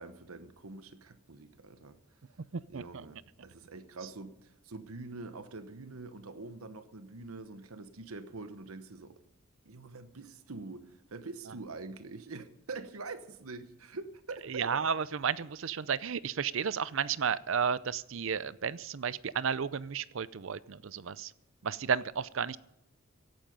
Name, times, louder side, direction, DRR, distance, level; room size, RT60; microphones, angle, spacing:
voice 1, 0.0-2.0 2.7-9.2 9.7-14.8, right 3 dB, 85° right, 1.1 m, -45 dB
voice 2, 14.5-21.3 21.6-22.6, right 7 dB, 65° right, 0.5 m, -32 dB
16.5 x 11.5 x 5.4 m
head